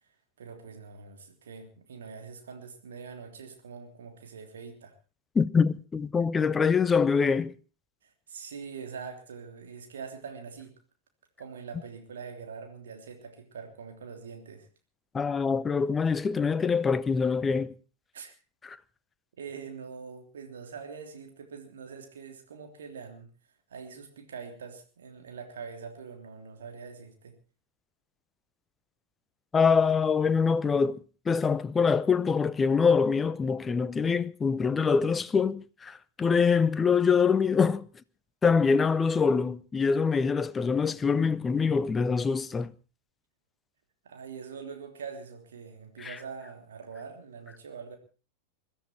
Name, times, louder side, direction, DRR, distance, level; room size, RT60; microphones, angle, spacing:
voice 1, 0.4-4.9 8.0-10.8 11.4-14.7 18.1-18.3 19.4-23.3 23.7-27.4 44.0-48.0, right 6 dB, 65° right, 3.2 m, -43 dB
voice 2, 5.3-7.5 15.1-17.7 18.6-18.8 29.5-31.0 31.3-37.8 38.4-42.7 46.0-46.2, left 5 dB, 15° left, 0.7 m, -24 dB
22.0 x 13.0 x 4.4 m
figure-of-eight pair, 90°, 0 cm